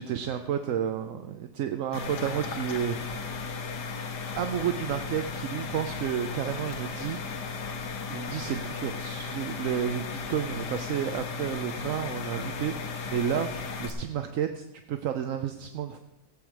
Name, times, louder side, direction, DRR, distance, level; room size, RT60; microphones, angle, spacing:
voice 1, 0.0-3.3 4.3-7.2 8.1-12.7 13.1-13.5 13.8-16.0, right 9 dB, 65° right, 7 dB, 0.9 m, -31 dB
sound 1, 1.9-13.9, left 4 dB, 80° left, 1.6 m, -35 dB
16.5 x 8.1 x 4.7 m, 0.93 s
omnidirectional pair, 1.8 m